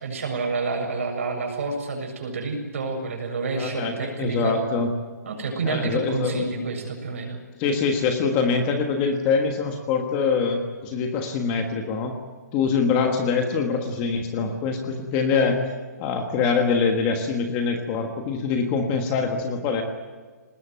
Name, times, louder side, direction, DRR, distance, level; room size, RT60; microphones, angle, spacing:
voice 1, 0.0-4.6 5.2-7.4, right 4 dB, 50° right, 3 dB, 7.3 m, -29 dB
voice 2, 3.6-4.9 5.6-6.6 7.6-12.2 12.5-15.6 16.0-19.8, left 5 dB, 15° left, 5 dB, 1.4 m, -24 dB
23.5 x 20.0 x 9.1 m, 1.4 s
hypercardioid pair, 180°, 9 cm